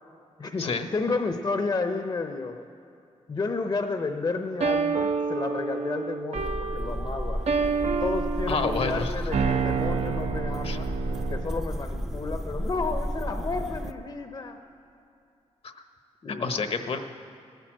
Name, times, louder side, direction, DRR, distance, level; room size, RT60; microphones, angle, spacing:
voice 1, 0.4-2.6 3.3-7.4 7.8-11.0 11.3-14.6 16.2-16.6, left 3 dB, 35° left, 6 dB, 0.8 m, -31 dB
sound 1, 4.6-11.6, right 5 dB, 65° right, 0.8 m, -29 dB
sound 2, 6.4-13.9, equal, 5° right, 0.6 m, -32 dB
voice 2, 8.5-9.1 10.6-10.8 15.6-15.7 16.4-17.0, left 4 dB, 55° left, 7 dB, 1.1 m, -28 dB
17.5 x 9.2 x 7.6 m, 2.6 s
cardioid pair, 85°, 12 cm